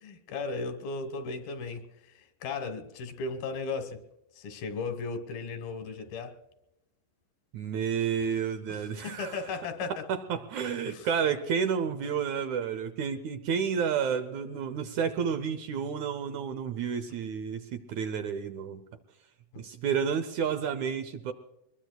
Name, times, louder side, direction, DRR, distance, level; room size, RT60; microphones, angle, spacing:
voice 1, 0.0-4.0 4.3-6.4 8.7-10.0 10.9-11.1 19.5-19.6, left 4 dB, 90° left, 3.2 m, -36 dB
voice 2, 7.5-9.4 10.1-18.8 19.6-21.3, right 7 dB, 75° right, 1.8 m, -30 dB
24.0 x 21.0 x 2.3 m
omnidirectional pair, 4.1 m